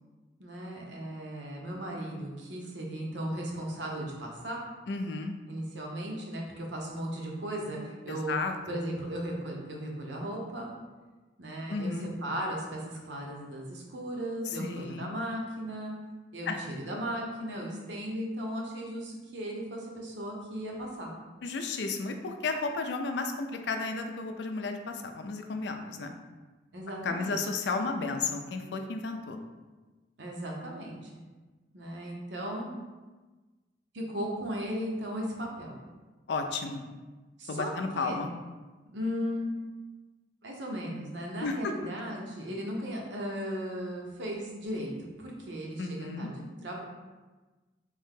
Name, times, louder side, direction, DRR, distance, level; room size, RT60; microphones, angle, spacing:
voice 1, 0.4-4.6 5.5-8.4 8.7-10.7 11.4-15.9 16.3-21.1 26.7-27.4 30.2-31.2 31.7-32.7 33.9-35.7 37.4-38.2 38.8-39.5 40.4-46.8, equal, 80° right, -1 dB, 0.8 m, -36 dB
voice 2, 4.9-5.3 8.1-8.8 11.7-12.1 14.6-15.1 16.5-16.6 21.4-26.1 27.0-29.4 36.3-36.8 37.5-38.3 41.4-41.6 45.8-46.3, left 3 dB, 70° left, 5 dB, 0.4 m, -33 dB
3.5 x 2.7 x 3.6 m, 1.2 s
head